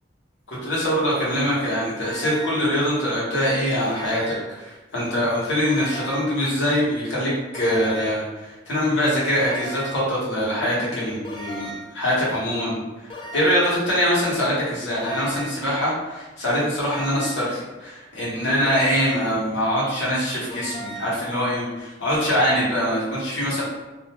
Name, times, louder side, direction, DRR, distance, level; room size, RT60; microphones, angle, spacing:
voice 1, 0.5-12.8 13.1-23.6, equal, 70° left, -8 dB, 1.1 m, -23 dB
sound 1, 2.0-2.7 3.8-4.6 5.7-6.4 7.5-8.3 9.4-10.1 11.2-12.0 13.1-13.8 15.0-15.7 16.8-17.5 18.7-19.4 20.5-21.2, right 1 dB, 25° left, 0.3 m, -36 dB
2.5 x 2.1 x 2.8 m, 1.1 s
head